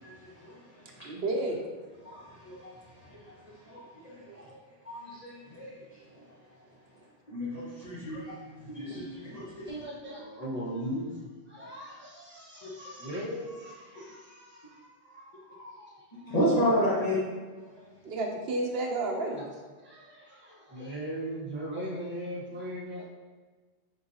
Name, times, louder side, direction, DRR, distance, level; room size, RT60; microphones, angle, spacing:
voice 1, 0.0-1.1 2.0-4.6 4.8-6.2 7.3-9.7 11.6-11.7 12.6-12.7 16.2-17.2 17.7-17.9, equal, 35° left, -9 dB, 1.1 m, -33 dB
voice 2, 1.0-1.6 4.3-4.5 18.0-19.4, right 2 dB, 70° right, 0 dB, 0.9 m, -31 dB
voice 3, 9.7-16.3 16.7-17.1 19.8-23.1, equal, 10° right, -7 dB, 1.0 m, -39 dB
4.6 x 3.8 x 2.7 m, 1.4 s
omnidirectional pair, 1.1 m